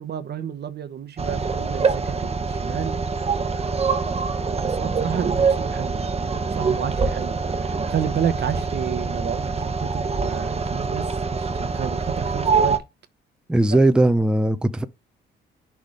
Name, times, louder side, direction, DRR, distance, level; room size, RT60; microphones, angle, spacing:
voice 1, 0.0-4.1 4.5-12.8 13.7-13.8, right 8 dB, 55° right, 1.0 m, -31 dB
sound 1, 1.2-12.8, right 5 dB, 30° right, 1.1 m, -24 dB
voice 2, 13.5-14.8, right 2 dB, 5° right, 0.6 m, -18 dB
6.5 x 3.5 x 4.8 m
cardioid pair, 90°, 20 cm